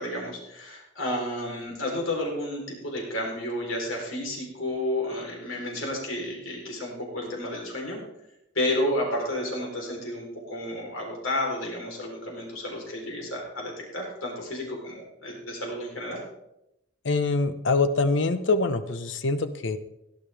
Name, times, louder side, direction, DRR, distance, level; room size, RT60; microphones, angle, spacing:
voice 1, 0.0-8.0 8.6-16.2, left 1 dB, 90° left, 0 dB, 3.7 m, -31 dB
voice 2, 17.0-19.8, left 3 dB, 70° left, 11 dB, 0.8 m, -24 dB
17.0 x 11.0 x 3.4 m, 0.84 s
head